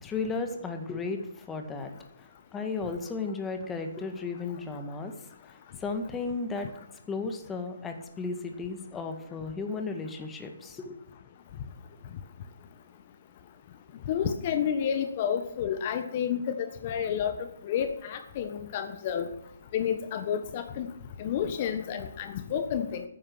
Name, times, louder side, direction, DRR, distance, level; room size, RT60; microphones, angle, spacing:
voice 1, 0.0-1.9 2.2-5.2 5.4-6.7 7.1-11.0, left 4 dB, 10° left, 5 dB, 1.7 m, -34 dB
voice 2, 14.1-17.3 17.6-19.3 19.7-20.9 21.2-23.0, left 8 dB, 40° left, 8 dB, 1.2 m, -30 dB
14.5 x 9.9 x 6.2 m, 0.79 s
hypercardioid pair, 145°, 0 cm